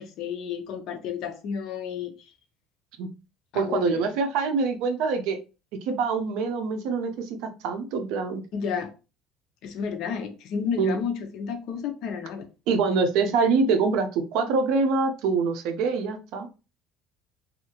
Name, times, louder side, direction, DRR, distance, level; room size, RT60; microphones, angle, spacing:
voice 1, 0.0-2.3 3.5-4.0 8.5-8.9 9.6-12.5, left 7 dB, 55° left, 0.5 m, -31 dB
voice 2, 3.5-5.4 5.9-8.4 10.8-11.0 12.7-16.5, right 4 dB, 65° right, 0.5 m, -25 dB
2.7 x 2.4 x 2.8 m
cardioid pair, 160°, 0 cm